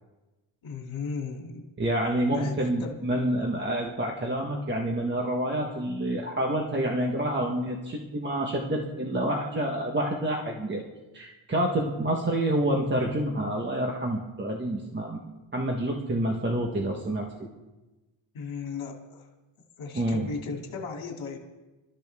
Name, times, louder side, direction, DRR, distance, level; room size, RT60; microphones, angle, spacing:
voice 1, 0.6-1.7 2.3-3.0 18.3-19.3 19.8-21.4, left 4 dB, 70° left, 0 dB, 2.8 m, -36 dB
voice 2, 1.8-10.8 11.1-15.2 15.5-17.3 19.9-20.3, right 1 dB, 25° right, 0 dB, 1.3 m, -28 dB
28.5 x 13.0 x 3.6 m, 1.1 s
wide cardioid pair, 175°, 48 cm